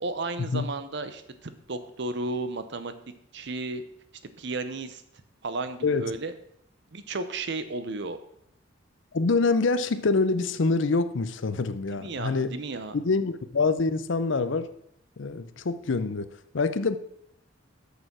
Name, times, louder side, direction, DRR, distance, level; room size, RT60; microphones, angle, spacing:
voice 1, 0.0-2.9 3.3-3.8 4.4-5.0 5.4-6.3 6.9-8.2 11.9-13.0, right 3 dB, 60° right, 11 dB, 0.8 m, -33 dB
voice 2, 9.1-12.5 12.9-14.7 15.2-17.0, left 3 dB, 65° left, 12 dB, 0.6 m, -26 dB
6.8 x 6.8 x 6.0 m, 0.74 s
head